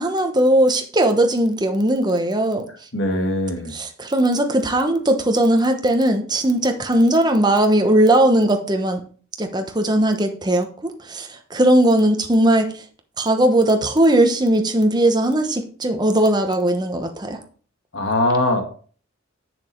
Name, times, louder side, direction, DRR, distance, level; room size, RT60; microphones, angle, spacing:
voice 1, 0.0-2.6 3.7-9.0 9.4-12.7 13.2-17.4, right 1 dB, 20° right, 5 dB, 1.1 m, -18 dB
voice 2, 2.9-3.7 17.9-18.6, left 1 dB, 70° left, 4 dB, 1.9 m, -21 dB
7.1 x 6.8 x 4.5 m, 0.42 s
head